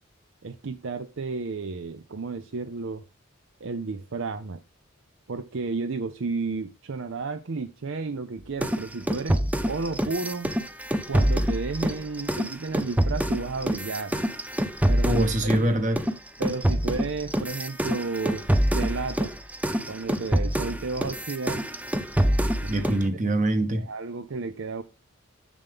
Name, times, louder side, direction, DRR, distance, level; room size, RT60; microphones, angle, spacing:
voice 1, 0.4-3.0 3.6-4.6 5.3-9.4 9.7-10.5 11.1-14.2 14.9-15.6 16.4-19.3 19.9-21.6 22.6-22.8 23.7-24.8, right 4 dB, 60° right, 0.6 m, -32 dB
sound 1, 8.6-15.7 16.0-23.1, equal, 5° right, 0.5 m, -26 dB
voice 2, 15.0-16.0 22.7-23.9, right 1 dB, 35° right, 1.4 m, -24 dB
7.2 x 6.8 x 3.6 m
head